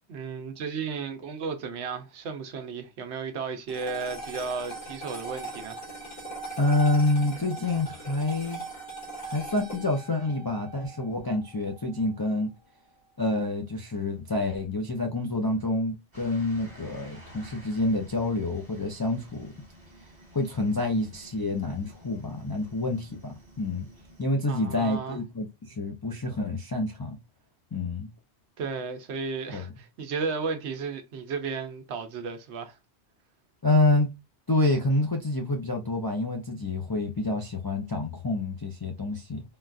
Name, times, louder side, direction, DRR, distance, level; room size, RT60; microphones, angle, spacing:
voice 1, 0.1-5.8 24.5-25.2 28.6-32.8, right 5 dB, 75° right, 1.0 m, -34 dB
sound 1, 3.7-12.2, right 2 dB, 85° left, 1.8 m, -40 dB
voice 2, 6.6-8.6 9.2-12.5 13.2-19.5 20.3-23.9 24.2-27.2 27.7-28.1 29.5-29.7 33.6-34.1 34.5-39.4, left 2 dB, 40° left, 0.3 m, -27 dB
sound 2, 16.1-24.3, right 1 dB, 25° right, 1.5 m, -51 dB
3.7 x 2.3 x 2.5 m
omnidirectional pair, 1.2 m